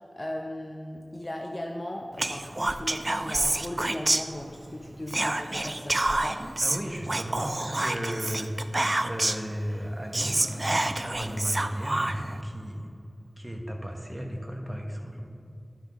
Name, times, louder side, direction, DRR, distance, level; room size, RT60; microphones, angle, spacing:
voice 1, 0.2-6.4, left 1 dB, 30° left, 1 dB, 0.6 m, -37 dB
Whispering, 2.2-4.7 5.1-9.5 9.8-9.9 10.1-12.4, right 2 dB, 35° right, 0.4 m, -28 dB
voice 2, 6.6-8.5 9.0-12.9 13.4-15.3, equal, 15° right, 1 dB, 1.2 m, -34 dB
11.5 x 6.0 x 3.6 m, 2.5 s
wide cardioid pair, 70°, 0 cm